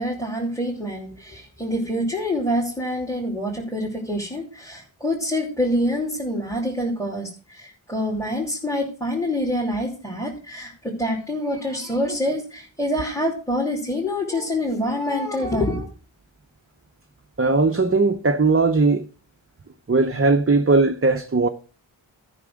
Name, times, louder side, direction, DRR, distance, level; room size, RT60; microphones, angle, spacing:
voice 1, 0.0-15.9, left 1 dB, 5° left, 2.9 m, -26 dB
voice 2, 17.4-19.1 19.9-21.5, right 3 dB, 30° right, 0.8 m, -18 dB
13.0 x 6.2 x 6.3 m
wide cardioid pair, 60°, 48 cm